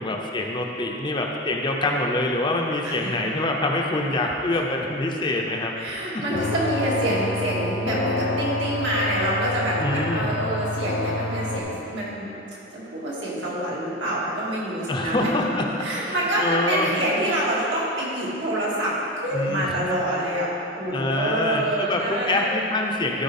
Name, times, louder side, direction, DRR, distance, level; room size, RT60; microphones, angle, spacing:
voice 1, 0.0-5.7 6.1-6.2 9.8-10.3 14.9-15.7 16.0-16.9 19.3-19.7 20.9-23.2, left 2 dB, 25° left, 1 dB, 0.6 m, -25 dB
voice 2, 2.8-3.3 4.2-4.3 5.8-12.3 12.7-15.3 15.8-20.5 20.8-22.6, right 1 dB, 85° right, -6 dB, 2.0 m, -26 dB
sound 1, 6.3-11.6, left 2 dB, 75° left, 0.7 m, -27 dB
13.0 x 4.5 x 4.2 m, 2.8 s
head